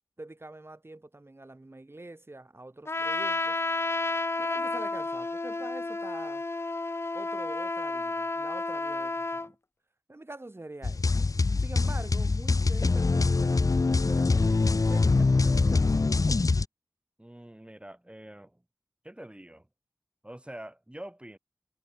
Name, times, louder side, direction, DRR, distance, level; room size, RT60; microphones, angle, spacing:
voice 1, 0.2-3.6 4.4-6.4 7.1-9.6 10.1-11.2 11.6-14.6 14.9-16.6, right 2 dB, 40° right, 7.9 m, -45 dB
Trumpet, 2.9-9.5, left 2 dB, 40° left, 0.7 m, -31 dB
sound 1, 10.8-16.6, left 3 dB, 65° left, 1.1 m, -24 dB
voice 2, 17.2-18.6 19.0-19.7 20.2-21.4, right 1 dB, 15° right, 4.0 m, -45 dB
wide cardioid pair, 55°, 6 cm